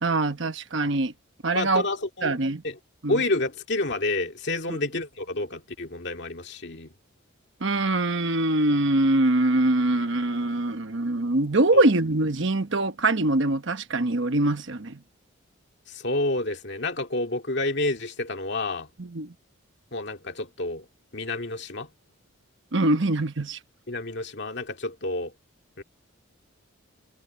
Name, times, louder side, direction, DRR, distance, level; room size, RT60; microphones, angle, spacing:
voice 1, 0.0-1.1 1.4-1.8 2.2-2.6 3.0-3.2 7.6-15.0 19.0-19.3 22.7-23.6, right 2 dB, 60° right, 1.2 m, -23 dB
voice 2, 1.5-2.4 2.6-2.8 3.1-6.9 11.7-11.8 15.9-18.9 19.9-20.9 21.1-21.9 23.9-25.3 25.8-25.9, left 2 dB, 55° left, 2.2 m, -29 dB
head